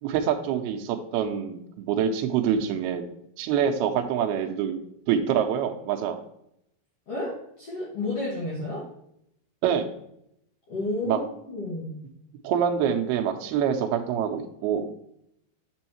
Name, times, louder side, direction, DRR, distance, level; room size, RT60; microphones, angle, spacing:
voice 1, 0.0-3.0 3.4-4.8 5.1-6.2 9.6-9.9 11.0-11.2 12.4-14.9, right 8 dB, 90° right, 4 dB, 2.6 m, -25 dB
voice 2, 7.1-8.9 10.7-12.1, left 2 dB, 50° left, -6 dB, 2.2 m, -31 dB
7.0 x 6.3 x 3.0 m, 0.75 s
omnidirectional pair, 4.4 m